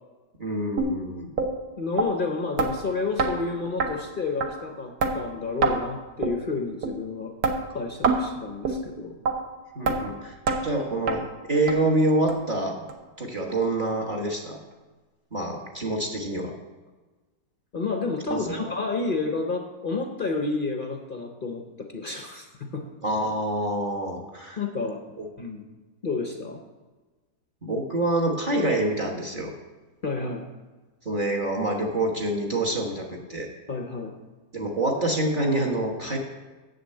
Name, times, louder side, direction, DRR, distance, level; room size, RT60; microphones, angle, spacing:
voice 1, 0.4-1.3 9.7-11.2 11.5-12.8 13.2-14.6 15.3-16.5 18.3-18.7 23.0-24.6 25.2-25.3 27.6-29.5 31.0-33.5 34.5-36.2, right 1 dB, 30° right, 0 dB, 1.2 m, -26 dB
sound 1, 0.8-0.9 1.4-1.5 2.0-2.1 2.6-2.7 3.2-3.3 3.8-3.9 4.4-4.5 5.0-5.1 5.6-5.8 6.2-6.4 6.8-6.9 7.4-7.6 8.0-8.2 8.6-8.8 9.3-9.4 9.9-10.0 10.5-10.6 11.1-11.2 11.7-11.8 12.3-12.4 12.9-13.0 13.5-13.6, right 4 dB, 60° right, 1.3 m, -24 dB
voice 2, 1.8-7.3 7.7-9.2 17.7-22.8 24.6-25.0 25.4-25.6 26.0-26.6 30.0-30.5 33.7-34.1, left 3 dB, 55° left, 4 dB, 0.6 m, -30 dB
7.4 x 6.6 x 7.6 m, 1.2 s
omnidirectional pair, 1.9 m